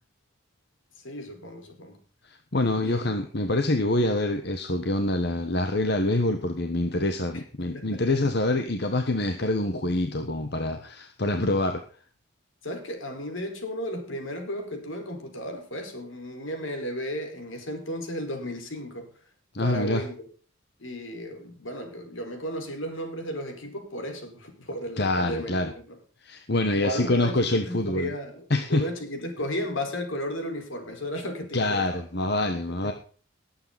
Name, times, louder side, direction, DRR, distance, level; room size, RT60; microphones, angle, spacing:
voice 1, 1.0-2.0 2.8-3.1 7.6-7.9 12.6-19.1 19.6-20.3 20.8-25.7 26.7-32.0 32.8-32.9, equal, 75° left, 5 dB, 4.8 m, -34 dB
voice 2, 2.2-11.8 19.5-20.0 25.0-25.7 26.2-28.1 28.5-28.9 31.5-32.9, left 2 dB, 55° left, 6 dB, 1.3 m, -26 dB
19.5 x 8.8 x 4.1 m, 0.41 s
head